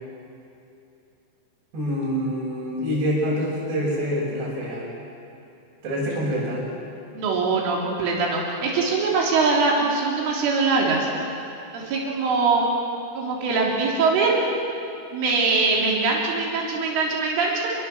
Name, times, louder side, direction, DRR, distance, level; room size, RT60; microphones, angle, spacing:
voice 1, 1.7-4.8 5.8-6.6, equal, 60° right, -8 dB, 8.2 m, -26 dB
voice 2, 7.1-11.1 11.7-12.6 13.1-14.3 15.1-17.7, right 4 dB, 85° right, -2 dB, 5.8 m, -22 dB
28.5 x 22.5 x 7.8 m, 2.8 s
omnidirectional pair, 5.5 m